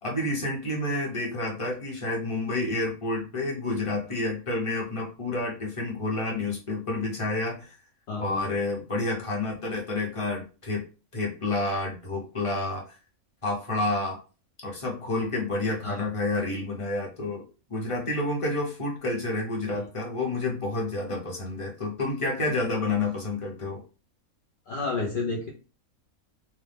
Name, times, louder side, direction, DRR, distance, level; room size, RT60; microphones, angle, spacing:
voice 1, 0.0-7.7 8.2-10.8 11.1-12.8 13.4-14.2 14.6-17.4 17.7-23.8, left 2 dB, 25° left, -2 dB, 0.8 m, -29 dB
voice 2, 8.1-8.5 15.8-16.0 19.7-19.8 24.7-25.5, left 3 dB, 60° left, -1 dB, 0.5 m, -31 dB
2.8 x 2.1 x 3.4 m, 0.34 s
omnidirectional pair, 1.5 m